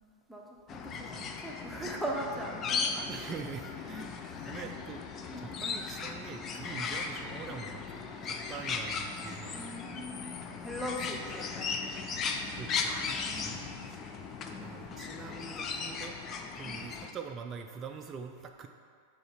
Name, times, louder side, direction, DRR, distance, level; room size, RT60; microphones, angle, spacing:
voice 1, 0.3-1.1 1.4-3.1 3.9-4.0 5.3-5.5 9.5-11.7 13.2-13.9 14.5-14.6 16.7-16.9, equal, ahead, -1 dB, 0.9 m, -40 dB
sound 1, 0.7-17.1, left 5 dB, 30° left, 0.5 m, -37 dB
voice 2, 3.1-4.1 4.5-5.0 5.4-9.8 12.5-13.0 13.4-14.0 14.6-16.2 16.5-18.7, right 6 dB, 25° right, 4 dB, 0.4 m, -44 dB
5.4 x 4.0 x 5.7 m, 2.2 s
figure-of-eight pair, 90°, 0 cm